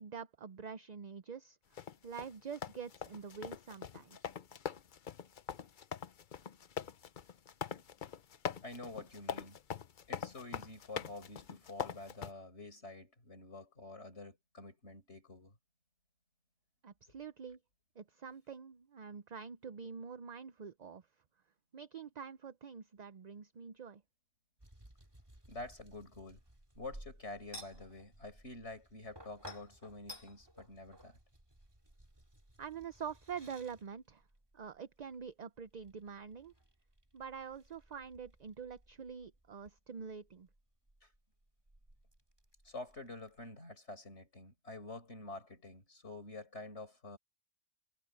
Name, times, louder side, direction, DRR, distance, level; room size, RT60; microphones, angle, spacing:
voice 1, 0.0-1.6 2.0-4.3 16.8-17.6 18.0-21.0 21.7-24.0 32.6-34.2 34.5-36.5 37.1-40.5, right 6 dB, 45° right, 0.7 m, -46 dB
sound 1, 1.8-12.3, left 7 dB, 50° left, 0.8 m, -43 dB
voice 2, 8.6-9.6 10.1-15.5 25.5-26.4 26.8-31.2 41.0-41.1 42.6-47.2, left 2 dB, 80° left, 5.6 m, -48 dB
sound 2, 24.6-43.5, equal, 20° right, 2.5 m, -57 dB
omnidirectional pair, 1.1 m